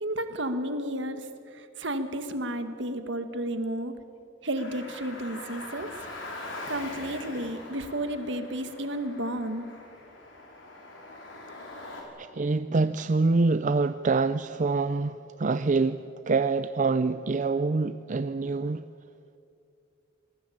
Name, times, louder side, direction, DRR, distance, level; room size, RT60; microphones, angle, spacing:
voice 1, 0.0-1.3 1.5-3.9 4.4-6.1 6.7-9.7, right 1 dB, 70° right, 8 dB, 1.9 m, -32 dB
Car, 4.5-12.0, left 2 dB, 90° left, 5.4 m, -42 dB
voice 2, 12.2-18.8, right 3 dB, 40° right, 12 dB, 0.5 m, -26 dB
27.5 x 19.5 x 8.7 m, 2.6 s
head